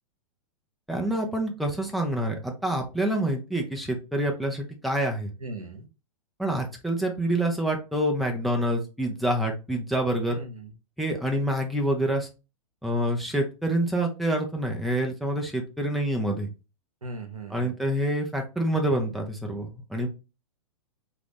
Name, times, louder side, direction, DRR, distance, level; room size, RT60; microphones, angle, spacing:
voice 1, 0.9-5.3 6.4-10.4 11.0-12.3 12.8-16.5 17.5-20.1, right 1 dB, ahead, 1 dB, 0.6 m, -27 dB
voice 2, 5.4-5.9 10.3-10.7 17.0-17.8, right 2 dB, 85° right, 6 dB, 0.8 m, -38 dB
3.9 x 2.5 x 3.3 m, 0.29 s
figure-of-eight pair, 105°, 18 cm